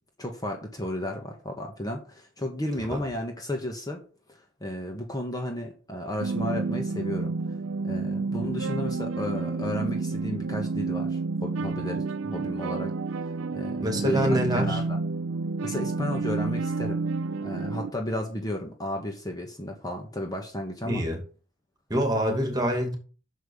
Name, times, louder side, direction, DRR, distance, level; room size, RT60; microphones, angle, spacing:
voice 1, 0.2-4.0 4.3-7.6 7.8-12.9 13.2-15.0 15.6-17.0 17.4-21.0, left 1 dB, 20° left, 1.4 m, -33 dB
sound 1, 6.2-17.9, right 3 dB, 85° right, 0.5 m, -30 dB
voice 2, 13.8-14.8 20.8-21.2 21.9-23.0, equal, 20° right, 2.5 m, -25 dB
6.6 x 5.9 x 7.1 m
head